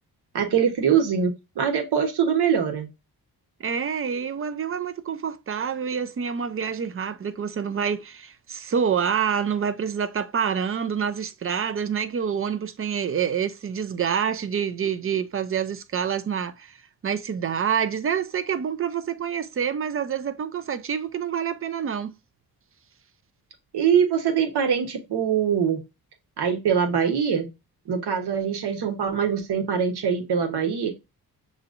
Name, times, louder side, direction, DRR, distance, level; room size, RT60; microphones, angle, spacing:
voice 1, 0.3-2.9 23.7-25.8 26.4-27.5 27.9-30.9, right 7 dB, 75° right, 1.2 m, -23 dB
voice 2, 3.6-16.8 17.0-22.1, right 7 dB, 35° right, 0.4 m, -27 dB
6.6 x 3.1 x 2.5 m
cardioid pair, 110°, 39 cm